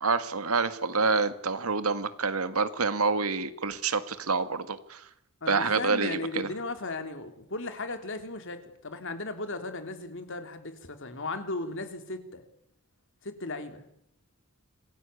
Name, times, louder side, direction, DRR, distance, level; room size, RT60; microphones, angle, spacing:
voice 1, 0.0-5.0 5.5-6.5, right 4 dB, 90° right, 11 dB, 1.9 m, -27 dB
voice 2, 5.4-12.4 13.2-13.9, left 2 dB, 60° left, 7 dB, 3.3 m, -36 dB
26.5 x 18.0 x 8.5 m, 0.72 s
head